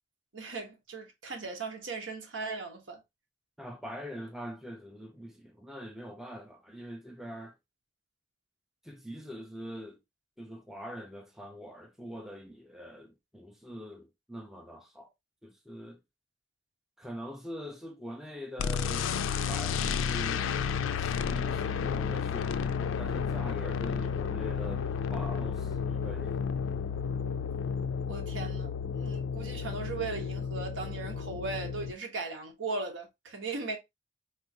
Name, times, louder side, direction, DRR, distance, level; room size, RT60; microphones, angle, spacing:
voice 1, 0.3-3.0 28.1-33.8, right 3 dB, 75° right, 0.9 m, -38 dB
voice 2, 3.6-7.6 8.8-10.0 10.4-15.1 15.4-16.0 17.0-19.1 19.5-20.5 21.0-26.4, equal, ahead, 0.4 m, -43 dB
sound 1, 18.6-31.9, left 6 dB, 85° left, 0.3 m, -32 dB
3.8 x 2.4 x 2.7 m
head